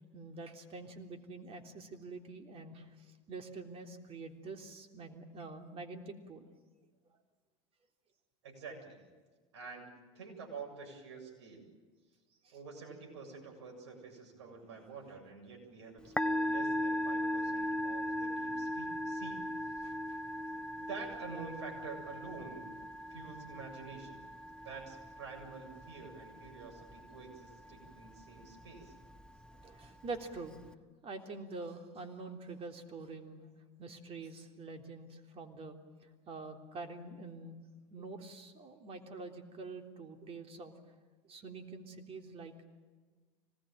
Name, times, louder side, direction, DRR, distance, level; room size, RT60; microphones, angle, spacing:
voice 1, 0.1-2.9 3.3-6.5 12.4-12.5 19.8-20.0 29.6-30.5 31.0-33.4 33.8-35.8 36.3-37.6 37.9-40.7 41.3-42.6, right 3 dB, 40° right, 5 dB, 3.5 m, -46 dB
voice 2, 8.4-9.0 9.5-11.7 12.5-19.4 19.8-19.9 20.9-22.7 23.1-24.2 24.6-28.9, right 4 dB, 80° right, 2 dB, 7.7 m, -48 dB
Musical instrument, 16.0-30.7, left 1 dB, 5° left, 1.1 m, -39 dB
25.5 x 20.0 x 9.1 m, 1.4 s
hypercardioid pair, 90°, 15 cm